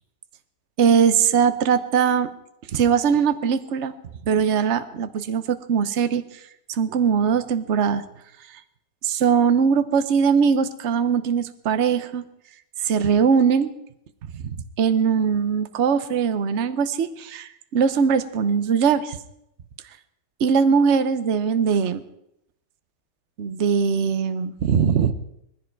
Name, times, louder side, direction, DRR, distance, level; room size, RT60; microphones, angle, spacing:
voice 1, 0.8-2.3 2.7-3.9 4.3-6.2 6.7-8.0 9.0-12.2 12.8-13.7 14.3-19.2 20.4-22.0 23.4-25.1, right 6 dB, 50° right, 11 dB, 1.0 m, -21 dB
19.5 x 15.5 x 4.7 m, 0.78 s
omnidirectional pair, 1.9 m